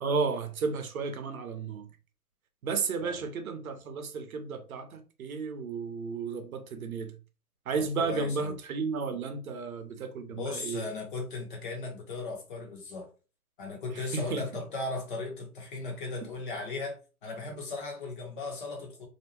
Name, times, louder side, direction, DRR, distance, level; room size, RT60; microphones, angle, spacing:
voice 1, 0.0-1.9 2.6-7.1 7.7-10.8 13.9-14.6, right 4 dB, 65° right, 0.7 m, -33 dB
voice 2, 7.8-8.6 10.3-13.1 13.6-19.1, left 3 dB, 35° left, 0.9 m, -37 dB
2.7 x 2.2 x 2.9 m
hypercardioid pair, 150°, 47 cm